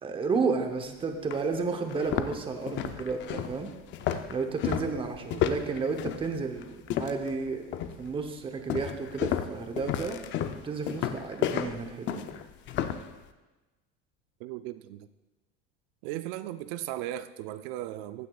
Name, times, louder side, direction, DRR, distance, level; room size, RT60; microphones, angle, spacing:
voice 1, 0.0-3.7 4.3-7.6 8.0-10.2 10.6-12.3, right 4 dB, 20° right, 6 dB, 0.8 m, -32 dB
sound 1, 0.7-0.8 1.3-1.4 1.9-7.4 7.7-8.1 8.7-13.1, left 10 dB, 40° left, 0.5 m, -32 dB
voice 2, 14.4-15.1 16.0-18.3, right 14 dB, 75° right, 12 dB, 0.5 m, -37 dB
15.0 x 9.4 x 2.4 m, 1.1 s
cardioid pair, 145°, 29 cm